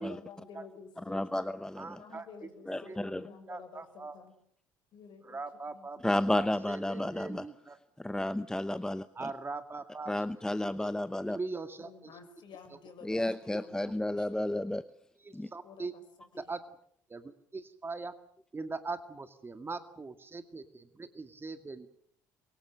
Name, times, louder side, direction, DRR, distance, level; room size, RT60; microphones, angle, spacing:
voice 1, 0.0-1.3 1.8-4.3 4.9-5.4 5.7-5.9 11.8-13.2 13.5-14.5 15.6-16.0, left 6 dB, 55° left, 8 dB, 6.3 m, -51 dB
voice 2, 1.0-2.0 2.7-3.3 6.0-7.4 8.0-9.3 10.1-11.4 13.0-14.8 15.3-15.5, left 1 dB, 5° left, 14 dB, 0.9 m, -32 dB
voice 3, 1.8-3.0 3.5-4.3 5.2-7.8 9.2-10.1 10.8-10.9 11.3-12.2 12.7-12.8 15.2-16.0 16.4-16.6 17.1-18.1 18.5-21.9, right 3 dB, 25° right, 9 dB, 2.1 m, -41 dB
28.5 x 23.5 x 6.7 m, 0.67 s
figure-of-eight pair, 55°, 10 cm